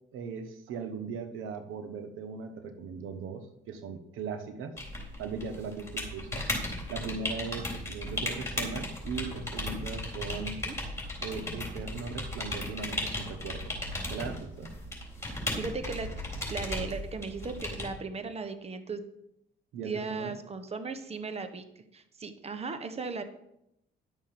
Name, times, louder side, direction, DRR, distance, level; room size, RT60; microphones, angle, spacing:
voice 1, 0.1-4.7 5.2-6.4 6.9-10.6 11.2-13.7 14.1-14.7 19.7-20.3, right 5 dB, 90° right, 8 dB, 1.1 m, -38 dB
sound 1, 4.8-17.9, left 1 dB, 15° left, 3.7 m, -36 dB
voice 2, 15.3-16.1 16.5-19.0 19.8-23.2, right 4 dB, 30° right, 9 dB, 1.1 m, -37 dB
11.0 x 6.4 x 5.9 m, 0.80 s
cardioid pair, 90°, 20 cm